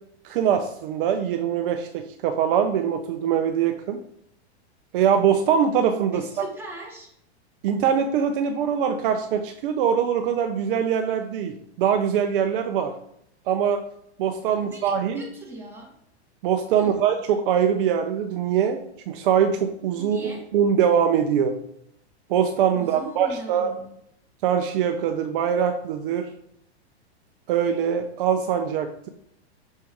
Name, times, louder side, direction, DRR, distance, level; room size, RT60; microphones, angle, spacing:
voice 1, 0.2-4.0 4.9-6.5 7.6-12.9 13.5-13.8 14.2-15.2 16.4-18.8 19.1-21.6 22.3-23.7 24.4-26.3 27.5-29.1, right 8 dB, 55° right, 6 dB, 0.6 m, -23 dB
voice 2, 6.1-7.1 14.5-15.9 16.7-17.0 20.0-20.5 22.7-23.9, right 1 dB, 5° right, -3 dB, 1.8 m, -40 dB
6.4 x 4.5 x 3.5 m, 0.73 s
hypercardioid pair, 130°, 33 cm